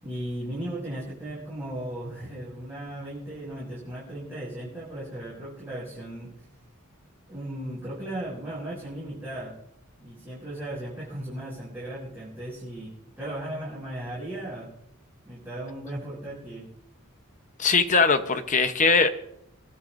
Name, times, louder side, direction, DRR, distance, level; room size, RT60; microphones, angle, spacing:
voice 1, 0.0-6.3 7.3-9.5 10.0-12.9 13.2-14.7 15.2-16.7, right 1 dB, 10° right, -9 dB, 7.8 m, -36 dB
voice 2, 17.6-19.2, left 4 dB, 35° left, 9 dB, 0.9 m, -21 dB
28.0 x 12.5 x 2.6 m, 0.77 s
head